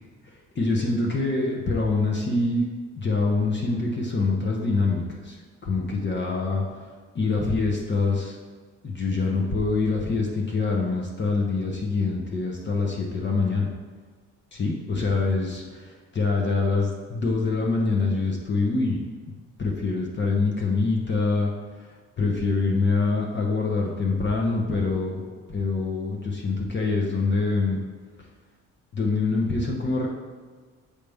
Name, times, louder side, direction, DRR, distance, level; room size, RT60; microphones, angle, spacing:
voice 1, 0.2-2.7 2.9-6.9 7.1-8.4 8.8-13.7 14.5-15.6 16.1-19.0 19.6-21.5 21.8-21.9 22.2-27.8 28.9-30.1, left 3 dB, 35° left, 0 dB, 1.0 m, -25 dB
6.9 x 4.9 x 3.5 m, 1.4 s
cardioid pair, 90°, 30 cm